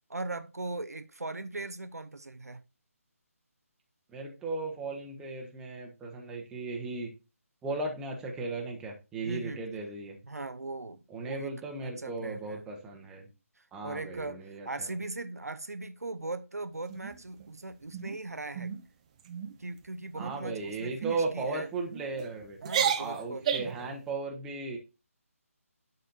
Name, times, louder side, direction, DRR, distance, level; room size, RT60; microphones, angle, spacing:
voice 1, 0.1-2.6 9.2-9.6 10.3-11.5 11.8-12.6 13.6-18.7 19.6-21.7 22.6-24.0, right 2 dB, 85° right, 0.7 m, -39 dB
voice 2, 4.1-7.1 7.6-10.2 11.1-13.3 13.7-14.9 20.1-22.6 23.0-24.8, right 3 dB, 10° right, 1.1 m, -36 dB
sound 1, 16.9-17.5 17.9-18.2 18.5-18.8 19.2-19.5 20.2-20.5 21.0-21.2 21.9-22.3 22.6-23.8, right 8 dB, 25° right, 0.6 m, -32 dB
11.0 x 4.2 x 2.7 m
figure-of-eight pair, 150°, 8 cm